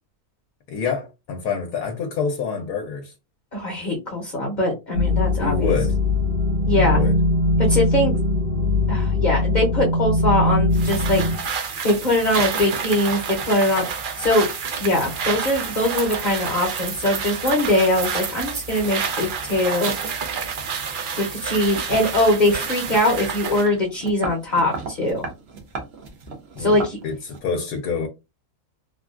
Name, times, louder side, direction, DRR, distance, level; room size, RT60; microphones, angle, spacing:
voice 1, 0.7-3.1 5.4-6.0 6.7-7.2 26.6-26.8 27.0-28.1, left 6 dB, 75° left, 1.1 m, -27 dB
voice 2, 3.5-5.7 6.7-7.0 7.7-8.1 8.9-11.2 11.8-14.5 14.8-19.9 21.2-25.3 26.6-27.0, left 1 dB, 40° left, 0.8 m, -22 dB
sound 1, 4.9-11.4, left 2 dB, 70° right, 1.5 m, -21 dB
sound 2, 10.7-23.7, right 6 dB, 90° right, 0.4 m, -29 dB
sound 3, 21.7-27.4, right 3 dB, 50° right, 0.8 m, -36 dB
3.5 x 2.3 x 2.4 m
omnidirectional pair, 1.6 m